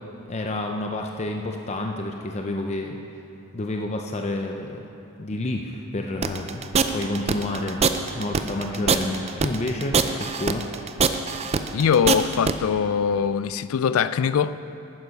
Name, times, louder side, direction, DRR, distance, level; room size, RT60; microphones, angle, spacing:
voice 1, 0.3-3.0 3.5-4.9 5.2-7.8 8.1-10.7, left 2 dB, 30° left, 0.5 m, -29 dB
sound 1, 6.2-12.5, right 5 dB, 30° right, 0.4 m, -22 dB
voice 2, 11.7-14.6, left 7 dB, 80° left, 0.4 m, -22 dB
12.0 x 9.4 x 5.3 m
head